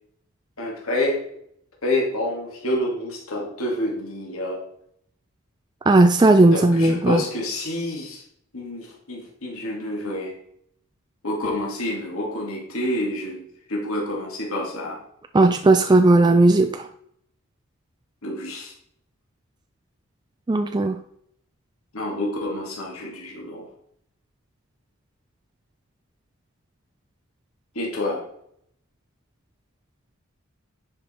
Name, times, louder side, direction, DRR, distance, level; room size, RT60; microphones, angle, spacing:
voice 1, 0.6-1.3 1.8-4.7 6.5-8.2 8.5-10.4 11.2-15.0 18.2-18.7 21.9-23.7 27.7-28.3, left 1 dB, 70° left, -2 dB, 2.2 m, -28 dB
voice 2, 5.9-7.2 15.3-16.9 20.5-21.0, right 2 dB, 20° right, 7 dB, 0.3 m, -16 dB
10.0 x 5.1 x 4.3 m, 0.69 s
head